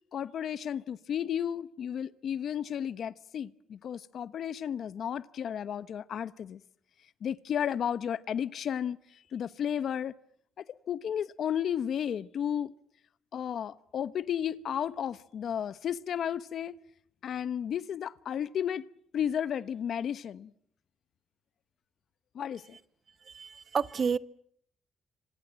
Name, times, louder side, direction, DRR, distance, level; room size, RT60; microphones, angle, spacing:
voice 1, 0.1-6.6 7.2-10.1 10.6-12.7 13.3-16.8 17.2-18.9 19.1-20.5 22.3-22.8, left 9 dB, 65° left, 1.0 m, -33 dB
voice 2, 23.3-24.2, right 6 dB, 45° right, 1.1 m, -30 dB
26.5 x 26.5 x 7.6 m
cardioid pair, 90°, 0 cm